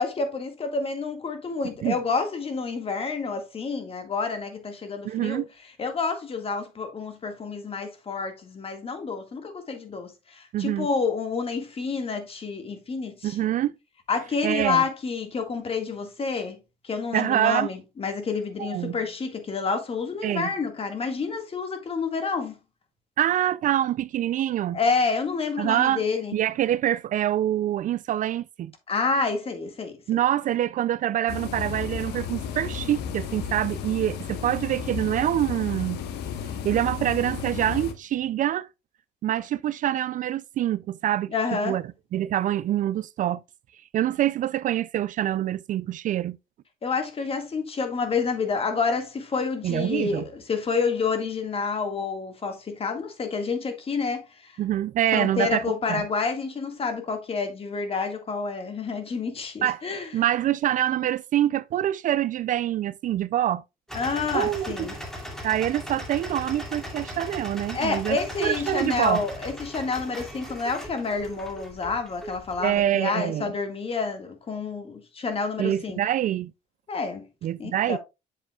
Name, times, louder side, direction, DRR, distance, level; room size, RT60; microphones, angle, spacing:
voice 1, 0.0-5.4 5.8-13.5 14.1-16.6 16.8-22.6 24.7-26.4 28.9-30.2 41.3-41.8 46.8-54.6 55.1-60.1 63.9-64.9 67.7-76.0 76.9-77.3 77.6-78.0, left 4 dB, 35° left, 1.8 m, -29 dB
voice 2, 5.1-5.4 10.5-10.9 13.2-13.7 14.4-14.8 17.1-17.7 18.6-19.0 20.2-20.5 23.2-24.8 25.6-26.0 26.3-28.7 30.1-36.0 36.6-38.7 39.2-41.3 41.6-41.8 42.1-43.4 43.9-46.4 49.6-50.2 54.6-56.0 59.6-59.8 60.1-63.6 64.3-64.9 65.4-69.2 72.6-73.5 75.6-76.5 77.4-78.0, right 12 dB, 50° right, 0.4 m, -25 dB
sound 1, 31.3-37.9, left 7 dB, 80° left, 1.1 m, -33 dB
sound 2, 63.9-72.9, equal, 5° left, 2.5 m, -38 dB
7.5 x 7.4 x 2.3 m
cardioid pair, 110°, 17 cm